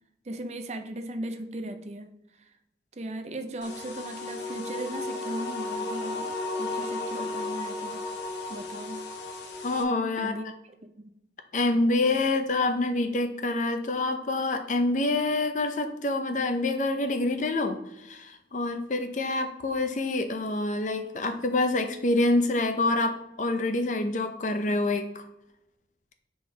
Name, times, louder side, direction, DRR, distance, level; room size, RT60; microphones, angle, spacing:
voice 1, 0.3-2.1 2.4-2.5 3.0-8.0 8.5-9.1 10.2-10.5 10.8-11.1, right 1 dB, 40° right, 8 dB, 0.5 m, -37 dB
sound 1, 3.6-9.8, left 2 dB, 80° left, 0.8 m, -34 dB
voice 2, 9.6-10.3 11.5-25.2, left 2 dB, 45° left, 7 dB, 0.6 m, -27 dB
6.5 x 3.9 x 3.9 m, 0.88 s
head